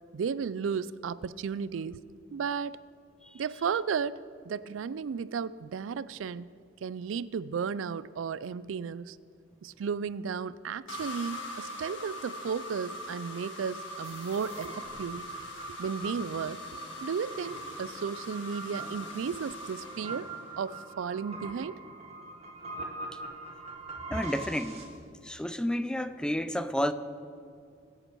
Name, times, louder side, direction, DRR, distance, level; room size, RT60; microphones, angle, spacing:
voice 1, 0.1-2.0 2.3-2.8 3.3-4.2 4.5-6.5 6.8-9.2 9.6-15.3 15.8-16.6 17.0-20.3 20.6-21.8 22.8-22.9, right 6 dB, 80° right, 18 dB, 0.4 m, -34 dB
sound 1, 10.9-20.9, left 1 dB, 70° left, 1.7 m, -42 dB
sound 2, 14.0-24.8, right 2 dB, 35° right, 1.9 m, -43 dB
voice 2, 24.1-24.9 25.2-26.9, equal, 5° left, 12 dB, 0.4 m, -30 dB
22.0 x 8.1 x 4.6 m, 2.4 s
head